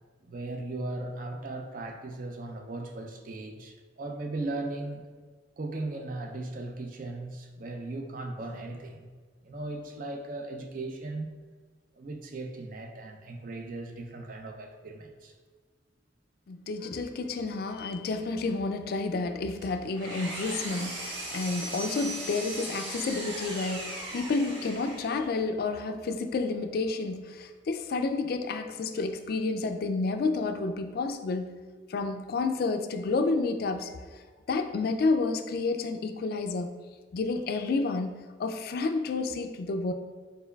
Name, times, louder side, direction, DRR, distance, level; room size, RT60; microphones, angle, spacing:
voice 1, 0.2-5.0 5.6-9.1 9.4-11.4 11.9-15.3, right 2 dB, 45° right, 4 dB, 0.4 m, -37 dB
voice 2, 16.5-31.5 31.9-33.9 34.5-36.7 37.1-39.9, left 3 dB, 55° left, 7 dB, 0.3 m, -30 dB
Engine, 19.6-25.3, right 1 dB, 75° right, 1.1 m, -38 dB
4.5 x 3.8 x 2.2 m, 1.5 s
head